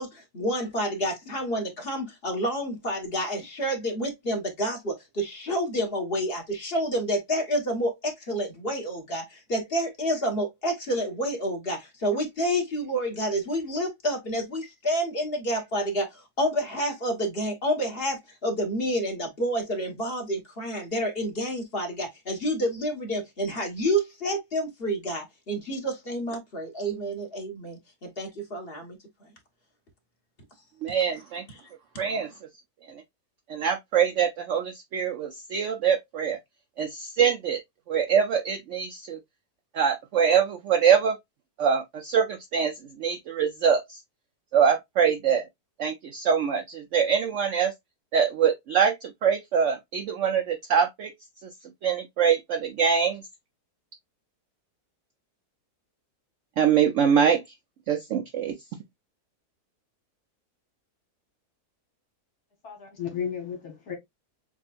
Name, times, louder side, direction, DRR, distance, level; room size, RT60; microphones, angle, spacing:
voice 1, 0.0-29.0 31.1-31.2 31.5-31.6, equal, 40° left, 1.6 m, -29 dB
voice 2, 30.8-31.4 32.0-32.3 33.5-36.4 36.8-37.6 37.9-39.2 39.8-41.1 41.6-42.7 43.0-43.8 44.5-45.4 45.8-47.7 48.1-48.9 49.2-51.1 51.8-53.2 56.6-57.4 57.9-58.5, right 7 dB, 65° right, 0.8 m, -24 dB
voice 3, 62.6-64.0, left 7 dB, 75° left, 1.9 m, -33 dB
7.2 x 2.5 x 2.4 m
omnidirectional pair, 1.6 m